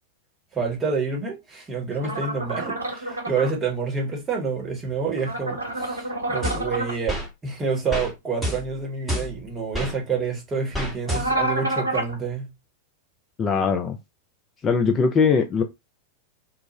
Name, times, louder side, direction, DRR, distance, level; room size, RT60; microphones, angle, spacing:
voice 1, 0.5-12.5, right 5 dB, 20° right, 0.9 m, -28 dB
sound 1, 2.0-3.5 5.2-7.0 11.1-12.1, right 2 dB, 80° right, 0.8 m, -28 dB
sound 2, 6.4-7.3 7.9-8.1 8.4-9.9 10.7-11.6, equal, ahead, 1.0 m, -30 dB
voice 2, 13.4-14.0 14.6-15.6, left 5 dB, 25° left, 0.4 m, -20 dB
2.3 x 2.0 x 3.0 m
figure-of-eight pair, 90°, 0 cm